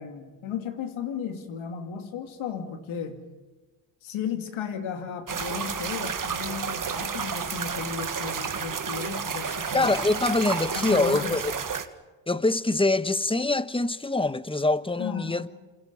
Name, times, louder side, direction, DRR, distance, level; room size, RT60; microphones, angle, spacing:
voice 1, 0.0-3.2 4.0-10.0 10.7-11.4 15.0-15.5, left 7 dB, 80° left, 2.7 m, -34 dB
sound 1, 5.3-11.8, right 6 dB, 40° right, 1.8 m, -31 dB
voice 2, 9.7-11.5 12.3-15.5, left 2 dB, 10° left, 1.2 m, -24 dB
29.0 x 27.5 x 5.6 m
supercardioid pair, 50°, 47 cm